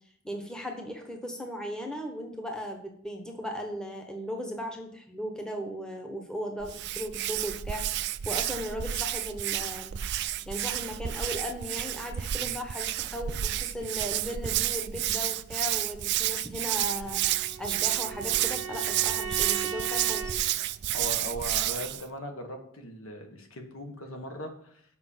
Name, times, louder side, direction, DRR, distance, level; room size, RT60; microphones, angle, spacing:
voice 1, 0.2-9.9 10.4-20.3, equal, 5° left, 3 dB, 1.0 m, -37 dB
Hands, 6.6-22.0, right 13 dB, 50° right, 0.4 m, -30 dB
Bowed string instrument, 16.8-20.4, right 5 dB, 70° right, 1.0 m, -38 dB
voice 2, 20.9-24.8, equal, 70° left, 4 dB, 1.6 m, -39 dB
7.8 x 5.2 x 7.2 m, 0.66 s
head